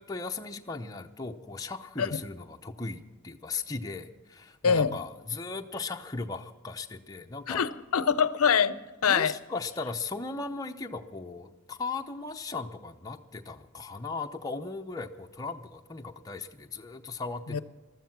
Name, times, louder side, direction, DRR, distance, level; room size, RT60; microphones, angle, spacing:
voice 1, 0.0-7.6 8.7-17.6, left 3 dB, 15° left, 0.6 m, -37 dB
voice 2, 4.6-5.0 7.5-9.3 17.5-17.6, left 6 dB, 75° left, 0.6 m, -25 dB
15.0 x 13.0 x 6.0 m
head